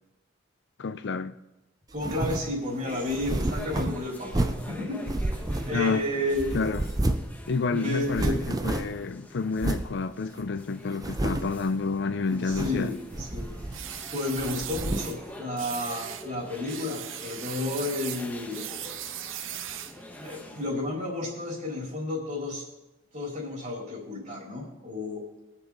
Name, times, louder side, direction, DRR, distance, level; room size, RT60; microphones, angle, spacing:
voice 1, 0.8-1.4 5.7-6.1 6.5-6.8 7.5-13.0, left 4 dB, 60° left, 0.5 m, -29 dB
voice 2, 1.9-6.5 7.7-8.4 12.3-13.5 14.1-18.6 20.2-22.7 23.1-25.2, left 2 dB, 40° right, 4.2 m, -32 dB
sound 1, 2.0-2.5 3.1-4.7 5.1-6.0 6.3-7.4 7.6-7.7 8.0-9.0 9.6-9.9 10.4-10.5 10.9-11.6 12.3-12.9 13.1-14.0 14.4-15.2, right 1 dB, 20° right, 0.6 m, -30 dB
sound 2, 2.4-20.9, left 1 dB, 10° left, 1.3 m, -46 dB
sound 3, 13.7-15.2 15.6-16.3 16.7-20.0, right 11 dB, 75° right, 0.7 m, -38 dB
21.5 x 7.4 x 4.0 m
head